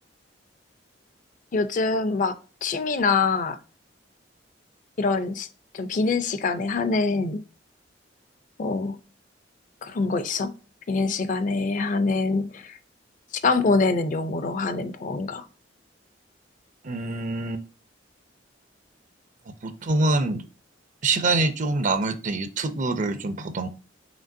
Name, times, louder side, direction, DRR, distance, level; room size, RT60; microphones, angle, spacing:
voice 1, 1.5-2.4 2.6-3.6 5.0-5.5 5.7-7.4 8.6-9.0 9.8-10.6 10.9-12.8 13.4-15.5, left 4 dB, 45° left, 0.4 m, -24 dB
voice 2, 16.8-17.6 19.6-20.4 21.0-23.7, right 2 dB, 45° right, 0.4 m, -25 dB
5.1 x 3.0 x 2.6 m
head